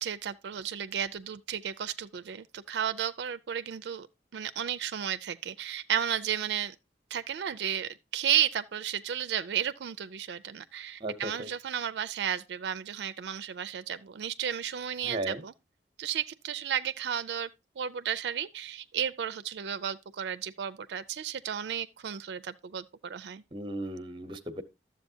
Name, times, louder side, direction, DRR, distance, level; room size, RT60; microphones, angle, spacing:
voice 1, 0.0-4.1 4.3-6.7 7.1-15.5 16.0-17.5 17.8-23.4, right 9 dB, 75° right, 0.4 m, -33 dB
voice 2, 11.0-11.5 15.0-15.4 23.5-24.6, right 1 dB, 25° right, 0.8 m, -36 dB
12.5 x 7.4 x 2.7 m
head